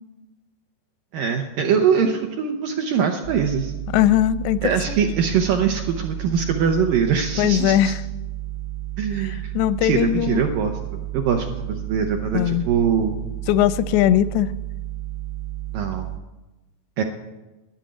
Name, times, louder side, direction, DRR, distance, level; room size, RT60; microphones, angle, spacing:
voice 1, 1.1-3.7 4.6-7.9 9.0-9.5 9.8-10.8 11.1-13.2 15.7-16.1 17.0-17.1, right 7 dB, 75° right, 3 dB, 2.0 m, -22 dB
sound 1, 3.2-16.2, right 15 dB, 55° right, 1.2 m, -32 dB
voice 2, 3.9-5.0 7.4-8.0 9.2-10.4 12.3-12.7 13.5-14.5, left 12 dB, 85° left, 15 dB, 2.8 m, -20 dB
11.5 x 10.5 x 8.6 m, 1.1 s
omnidirectional pair, 4.9 m